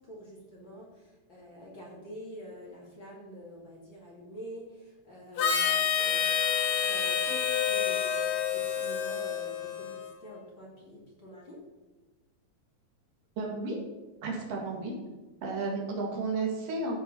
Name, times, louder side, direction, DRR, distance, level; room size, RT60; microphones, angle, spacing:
voice 1, 0.1-6.3 6.9-11.6, equal, 35° left, -4 dB, 2.8 m, -47 dB
Harmonica, 5.4-10.1, left 8 dB, 70° left, 2.7 m, -28 dB
voice 2, 13.4-13.8 14.2-14.9 15.4-17.0, right 3 dB, 70° right, -1 dB, 3.7 m, -32 dB
15.0 x 5.7 x 6.2 m, 1.1 s
omnidirectional pair, 4.1 m